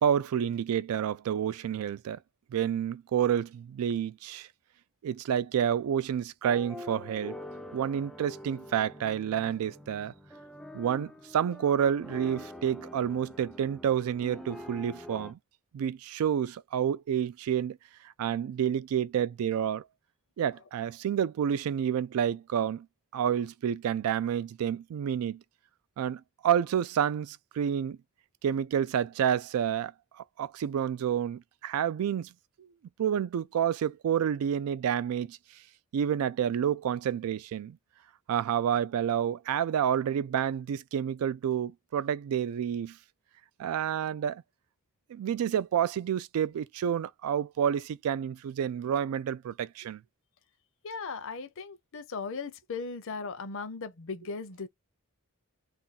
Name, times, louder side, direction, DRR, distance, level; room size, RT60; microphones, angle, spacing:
voice 1, 0.0-2.2 2.5-4.5 5.0-7.4 7.7-10.1 10.7-15.4 15.7-17.8 18.2-19.8 20.4-22.9 23.1-25.4 26.0-28.0 28.4-29.9 30.4-32.3 33.0-35.4 35.9-37.8 38.3-43.0 43.6-44.4 45.1-50.0, right 9 dB, 75° right, 0.3 m, -29 dB
sound 1, 6.4-15.3, left 1 dB, ahead, 0.3 m, -45 dB
voice 2, 50.8-54.7, left 4 dB, 65° left, 0.6 m, -37 dB
2.5 x 2.3 x 4.0 m
head